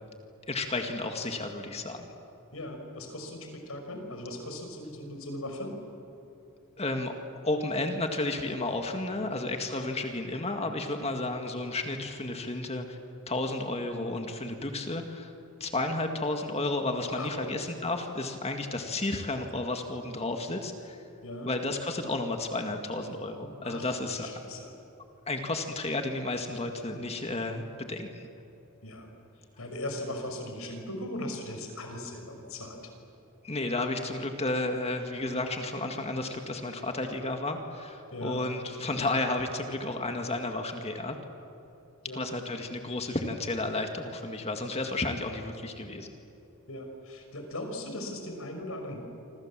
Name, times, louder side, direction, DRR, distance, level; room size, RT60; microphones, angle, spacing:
voice 1, 0.5-2.1 6.8-7.1 7.4-13.0 13.3-15.3 15.6-21.0 21.4-24.4 25.3-28.3 33.4-41.2 42.1-46.1, left 2 dB, 30° left, 4 dB, 2.0 m, -32 dB
voice 2, 2.5-5.7 17.0-17.5 21.2-21.5 23.6-24.7 28.8-29.1 29.6-32.9 38.1-38.4 42.1-42.3 46.7-49.0, left 1 dB, 80° left, 4 dB, 5.8 m, -39 dB
28.0 x 26.0 x 7.5 m, 2.9 s
head